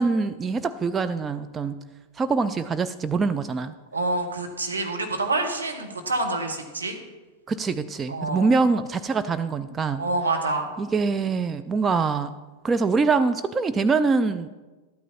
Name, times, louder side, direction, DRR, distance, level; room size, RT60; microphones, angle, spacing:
voice 1, 0.0-1.8 2.2-3.7 7.5-10.0 10.8-12.3 12.6-14.5, right 4 dB, 20° right, 9 dB, 0.4 m, -24 dB
voice 2, 3.9-7.0 8.1-8.5 9.9-10.7, right 2 dB, 80° right, 2 dB, 1.3 m, -27 dB
12.0 x 9.1 x 4.3 m, 1.2 s
figure-of-eight pair, 90°, 0 cm